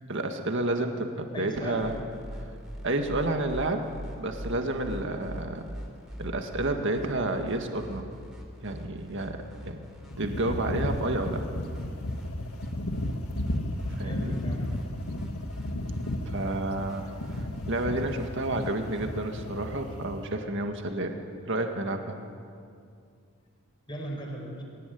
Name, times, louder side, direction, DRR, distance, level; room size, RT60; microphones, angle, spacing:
voice 1, 0.1-2.0 2.8-3.9 4.2-5.6 6.2-8.0 8.6-9.8 10.2-11.4 13.9-14.4 16.2-21.1 21.5-22.2, right 2 dB, 60° right, 4 dB, 1.9 m, -30 dB
voice 2, 1.3-1.9 14.0-14.7 23.9-24.6, equal, 20° left, 1 dB, 4.8 m, -37 dB
sound 1, 1.5-19.1, equal, ahead, 4.3 m, -44 dB
sound 2, 10.1-20.3, left 1 dB, 85° left, 1.6 m, -34 dB
22.0 x 18.0 x 9.4 m, 2.3 s
head